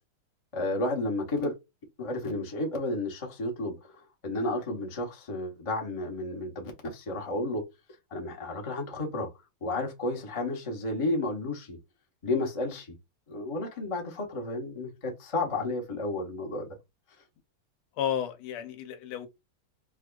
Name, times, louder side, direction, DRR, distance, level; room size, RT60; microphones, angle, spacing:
voice 1, 0.5-1.5 2.0-7.6 8.1-9.3 9.6-11.8 12.2-12.9 13.3-16.7, left 2 dB, 60° left, 0.3 m, -32 dB
voice 2, 18.0-19.3, left 9 dB, 85° left, 1.5 m, -32 dB
4.8 x 2.4 x 2.3 m
omnidirectional pair, 2.4 m